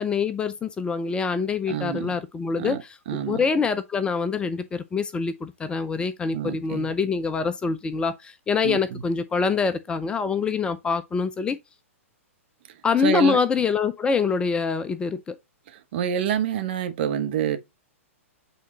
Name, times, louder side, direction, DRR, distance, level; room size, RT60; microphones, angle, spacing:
voice 1, 0.0-11.6 12.8-15.4, left 5 dB, 15° left, 0.5 m, -25 dB
voice 2, 1.7-2.2 2.6-3.4 6.3-6.9 8.6-9.0 12.7-13.4 15.7-17.6, right 8 dB, 50° right, 1.3 m, -28 dB
8.5 x 3.8 x 2.9 m
figure-of-eight pair, 110°, 8 cm